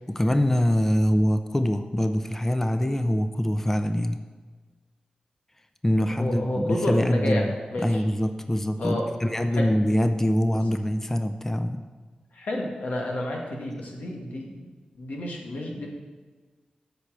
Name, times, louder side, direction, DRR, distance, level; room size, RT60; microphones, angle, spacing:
voice 1, 0.1-4.2 5.8-11.9, left 1 dB, 15° left, 8 dB, 0.6 m, -24 dB
voice 2, 6.1-8.0 8.8-9.7 12.3-14.7 15.0-15.9, left 1 dB, 90° left, -1 dB, 2.0 m, -30 dB
8.4 x 6.2 x 8.0 m, 1.3 s
wide cardioid pair, 90°, 3 cm